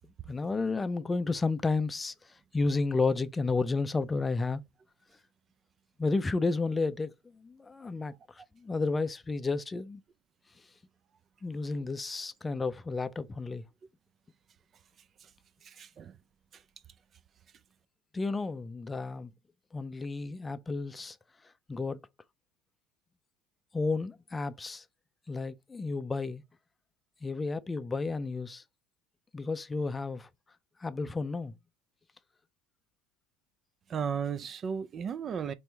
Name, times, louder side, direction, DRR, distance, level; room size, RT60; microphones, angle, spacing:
voice 1, 0.3-2.1 2.5-4.6 6.0-7.1 7.4-8.1 8.6-10.0 11.4-13.6 18.1-19.3 19.7-21.2 21.7-22.0 23.7-24.8 25.3-26.4 27.2-28.6 29.3-30.3 30.8-31.5, left 3 dB, 20° left, 0.5 m, -31 dB
voice 2, 15.6-16.2 16.5-16.6 33.9-35.5, right 7 dB, 40° right, 0.5 m, -35 dB
4.4 x 3.0 x 3.3 m
hypercardioid pair, 80°, 0 cm